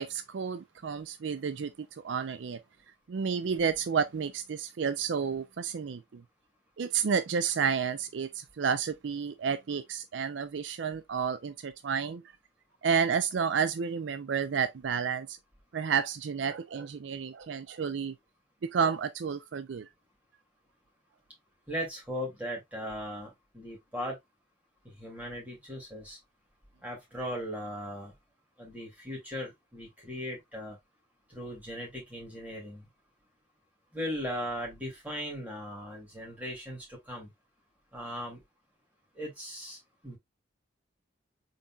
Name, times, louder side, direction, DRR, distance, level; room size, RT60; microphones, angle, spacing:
voice 1, 0.0-2.6 3.1-6.2 6.8-12.2 12.8-15.4 15.7-18.1 18.6-19.9, right 6 dB, 70° right, 0.4 m, -31 dB
voice 2, 21.7-24.2 24.8-26.2 26.8-28.1 28.6-30.8 31.3-32.9 33.9-37.3 37.9-38.4 39.1-39.8 40.0-40.2, equal, 10° right, 2.4 m, -38 dB
4.1 x 3.9 x 2.3 m
head